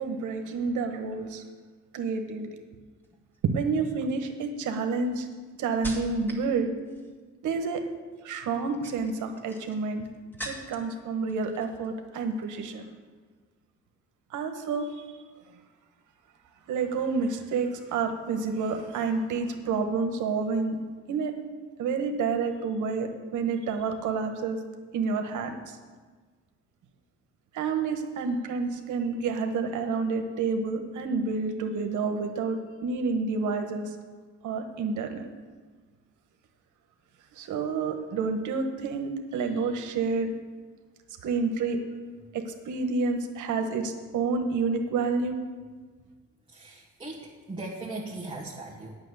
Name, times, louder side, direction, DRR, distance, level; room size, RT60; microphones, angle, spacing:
voice 1, 0.0-1.4 1.9-2.5 3.5-5.3 5.6-6.7 7.4-7.8 8.2-10.0 10.4-12.8 14.3-15.0 16.7-20.8 21.1-21.3 21.8-24.6 24.9-25.8 27.5-33.9 34.4-35.3 37.3-40.3 41.2-41.8 42.3-45.4, right 4 dB, 80° right, 5 dB, 1.3 m, -29 dB
sound 1, 3.0-3.4 4.1-6.5 6.8-7.3 8.5-10.9 11.3-11.9 12.2-12.4, right 1 dB, 5° left, 2.3 m, -43 dB
voice 2, 46.5-49.0, right 2 dB, 15° right, -4 dB, 1.7 m, -39 dB
9.4 x 6.4 x 8.0 m, 1.5 s
cardioid pair, 90°, 30 cm